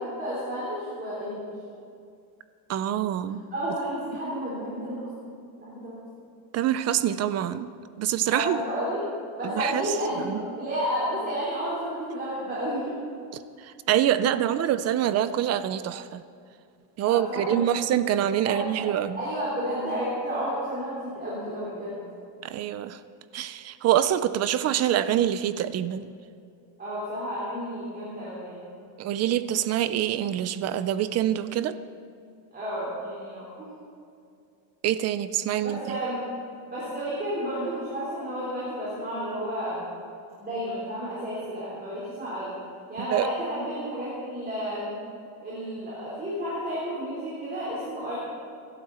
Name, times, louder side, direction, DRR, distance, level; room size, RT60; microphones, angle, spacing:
voice 1, 0.0-1.5 3.5-5.1 5.6-5.9 8.3-9.0 9.4-12.9 17.0-17.8 18.4-18.9 19.2-22.0 26.8-28.7 32.5-33.7 35.6-36.2 36.7-39.8 40.4-42.5 42.9-45.0 45.4-48.2, equal, 20° right, -8 dB, 4.1 m, -31 dB
voice 2, 2.7-3.4 6.5-7.7 8.0-8.6 9.4-9.8 10.2-10.4 13.6-16.2 17.0-19.2 22.4-23.0 23.3-26.1 29.0-31.8 34.8-36.0 43.0-43.3, right 11 dB, 35° right, 13 dB, 0.4 m, -25 dB
24.5 x 12.0 x 4.2 m, 2.4 s
cardioid pair, 170°, 49 cm